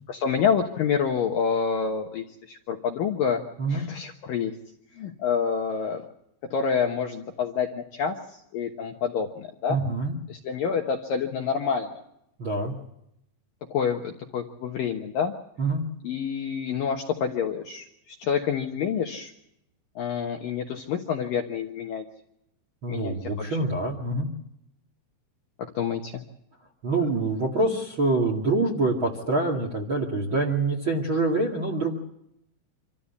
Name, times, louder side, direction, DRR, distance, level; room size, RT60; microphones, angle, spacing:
voice 1, 0.1-3.4 3.7-4.5 4.9-6.0 6.5-9.8 10.3-11.9 13.7-15.3 16.0-19.3 20.0-22.0 22.9-23.6 25.8-26.1, left 7 dB, 70° left, 2 dB, 2.3 m, -28 dB
voice 2, 9.7-10.2 12.4-12.7 15.6-15.8 22.8-24.3 26.8-31.9, right 2 dB, 40° right, 0 dB, 2.0 m, -25 dB
26.5 x 14.0 x 8.5 m, 0.78 s
omnidirectional pair, 5.4 m